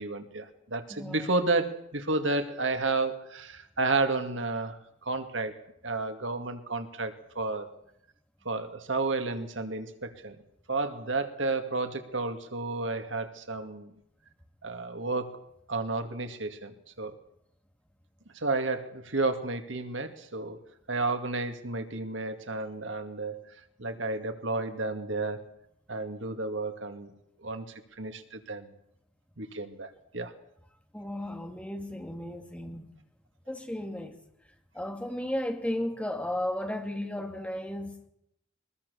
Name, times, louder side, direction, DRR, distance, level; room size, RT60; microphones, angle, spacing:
voice 1, 0.0-5.6 5.8-7.7 8.4-10.4 10.7-13.9 14.6-15.4 15.7-17.1 18.3-20.6 20.9-23.4 23.8-25.4 25.9-27.1 27.4-28.7 29.4-30.3, right 3 dB, 80° right, 2.3 m, -31 dB
voice 2, 30.9-32.8 33.5-34.2 34.7-38.1, left 1 dB, 5° left, 2.4 m, -34 dB
22.5 x 21.0 x 7.0 m
head